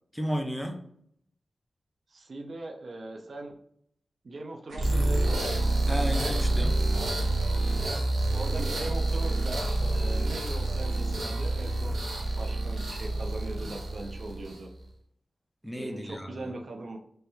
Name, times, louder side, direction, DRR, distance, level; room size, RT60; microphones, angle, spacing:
voice 1, 0.1-0.8 5.9-6.8 15.6-16.5, equal, ahead, 3 dB, 0.5 m, -33 dB
voice 2, 2.1-3.6 4.2-5.6 7.8-8.0 8.3-12.0 12.3-14.7 15.7-17.0, right 2 dB, 60° right, 3 dB, 0.5 m, -40 dB
sound 1, 4.7-14.7, right 2 dB, 85° right, 1.0 m, -28 dB
3.2 x 3.1 x 3.0 m, 0.70 s
cardioid pair, 65°, 0 cm